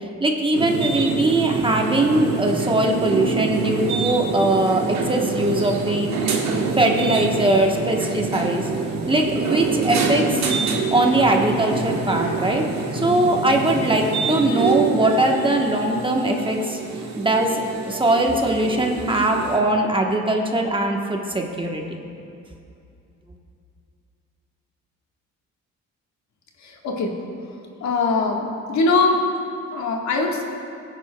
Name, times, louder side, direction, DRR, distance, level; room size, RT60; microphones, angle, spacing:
voice 1, 0.2-6.1 6.4-8.7 9.1-10.5 10.9-16.8 17.2-22.0, right 1 dB, 15° right, 1 dB, 1.1 m, -21 dB
sound 1, 0.5-19.6, right 4 dB, 65° right, 1.3 m, -26 dB
voice 2, 26.6-27.1 27.8-29.2 29.7-30.4, left 3 dB, 65° left, 1 dB, 1.5 m, -21 dB
17.5 x 9.8 x 2.2 m, 2.5 s
cardioid pair, 90°, 30 cm